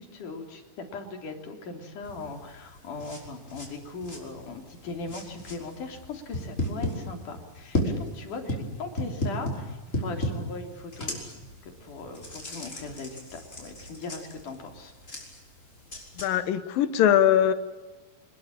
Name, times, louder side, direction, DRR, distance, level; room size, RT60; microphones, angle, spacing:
voice 1, 0.0-11.4 11.8-14.9, left 3 dB, 65° left, 4 dB, 4.8 m, -39 dB
sound 1, 2.0-16.3, left 1 dB, 20° left, 5.8 m, -36 dB
voice 2, 16.2-17.5, left 10 dB, 85° left, 12 dB, 3.0 m, -21 dB
27.0 x 21.5 x 8.9 m, 1.2 s
omnidirectional pair, 3.9 m